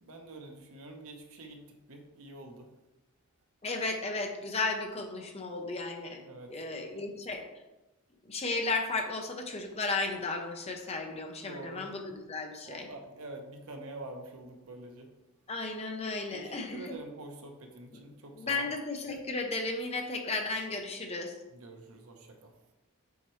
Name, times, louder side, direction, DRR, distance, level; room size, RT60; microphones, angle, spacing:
voice 1, 0.0-1.6 1.9-2.7 6.2-6.5 11.5-11.9 12.6-15.1 16.3-18.7 21.5-22.5, right 2 dB, 70° right, 3 dB, 0.9 m, -46 dB
voice 2, 3.6-6.2 6.5-7.4 8.2-12.9 15.5-17.0 18.3-21.3, left 3 dB, 30° left, 3 dB, 0.7 m, -34 dB
7.2 x 4.4 x 3.1 m, 1.0 s
head